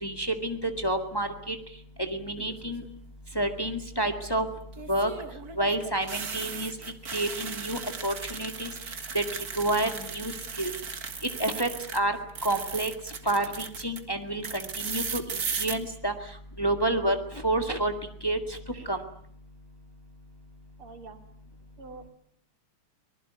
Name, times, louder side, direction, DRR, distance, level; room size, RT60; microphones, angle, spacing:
voice 1, 0.0-1.6 2.0-2.8 3.4-4.4 4.9-5.1 5.6-6.7 7.1-8.7 9.1-9.2 9.6-10.3 10.6-10.7 11.4-12.1 12.4-12.9 13.3-15.2 15.6-16.1 16.6-17.2 17.4-17.9 18.2-18.4 18.9-19.0, right 1 dB, 10° left, 6 dB, 1.8 m, -28 dB
sound 1, 2.4-2.9 4.7-12.0 12.3-14.0 14.4-15.7, right 6 dB, 45° right, 2.1 m, -37 dB
voice 2, 20.8-21.2 21.8-22.1, right 4 dB, 85° right, 6 dB, 3.4 m, -45 dB
24.5 x 19.5 x 9.4 m, 0.64 s
omnidirectional pair, 2.4 m